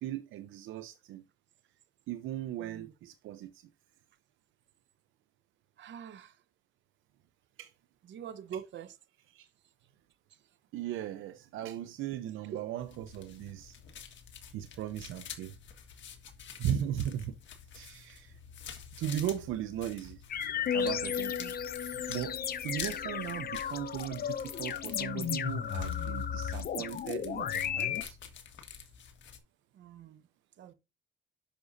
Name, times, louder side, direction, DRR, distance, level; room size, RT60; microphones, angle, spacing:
voice 1, 0.0-1.2 2.1-3.7 7.6-7.7 8.5-8.6 9.3-9.5 10.7-13.8 14.5-15.5 16.6-17.3 17.7-18.4 19.0-20.2 20.7-21.5 21.8-28.2, right 11 dB, 90° right, 0.7 m, -37 dB
voice 2, 5.8-6.3 8.1-8.9 29.8-30.2 30.6-30.7, right 8 dB, 70° right, 1.0 m, -43 dB
sound 1, 12.8-29.4, left 8 dB, 70° left, 1.7 m, -48 dB
sound 2, 20.3-28.0, left 8 dB, 50° left, 0.8 m, -34 dB
10.0 x 6.2 x 2.6 m
cardioid pair, 90°, 20 cm